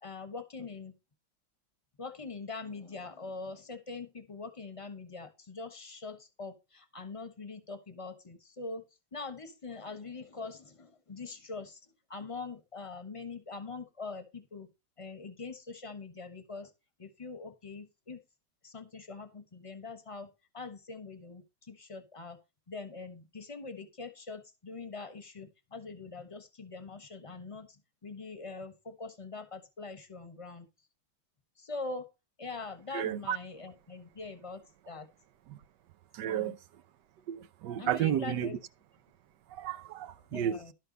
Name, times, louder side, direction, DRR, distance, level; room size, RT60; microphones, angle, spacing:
voice 1, 0.0-0.9 2.0-8.8 9.1-14.7 15.0-16.7 17.0-18.2 18.6-20.3 20.5-22.4 22.7-30.7 31.6-32.1 32.4-35.1 36.2-36.6 37.8-38.6 40.3-40.7, left 4 dB, 20° left, 1.0 m, -43 dB
voice 2, 32.9-33.4 35.5-35.6 36.1-36.6 37.3-38.5 39.5-40.6, right 10 dB, 70° right, 1.2 m, -32 dB
12.0 x 4.4 x 5.3 m
omnidirectional pair, 2.1 m